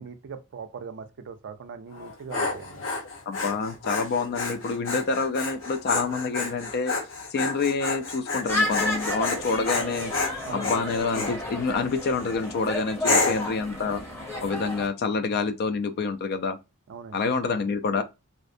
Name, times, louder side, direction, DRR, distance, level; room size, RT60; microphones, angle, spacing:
voice 1, 0.0-2.8 10.5-10.8 13.1-13.3 16.9-17.3, right 6 dB, 55° right, 0.4 m, -40 dB
Dog, 1.9-11.4 11.9-12.3 13.0-13.5, left 3 dB, 60° left, 0.9 m, -30 dB
voice 2, 3.3-6.9 7.3-10.1 10.5-14.0 14.4-16.6 17.1-18.0, left 4 dB, 45° left, 0.3 m, -27 dB
sound 1, 8.5-14.9, left 1 dB, 10° left, 0.7 m, -32 dB
2.5 x 2.0 x 2.5 m
head